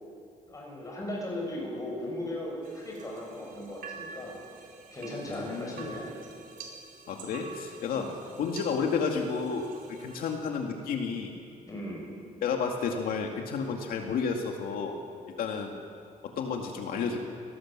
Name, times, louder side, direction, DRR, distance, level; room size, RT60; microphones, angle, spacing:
voice 1, 0.5-6.1 7.9-8.1 11.7-12.1, left 1 dB, 25° left, -2 dB, 7.4 m, -37 dB
sound 1, 2.6-10.4, right 5 dB, 75° right, 4.3 m, -47 dB
voice 2, 5.3-5.9 7.1-11.3 12.4-15.0 15.4-15.8 16.4-17.3, left 5 dB, 85° left, 2 dB, 2.2 m, -31 dB
26.5 x 18.5 x 7.5 m, 2.7 s
cardioid pair, 145°, 15 cm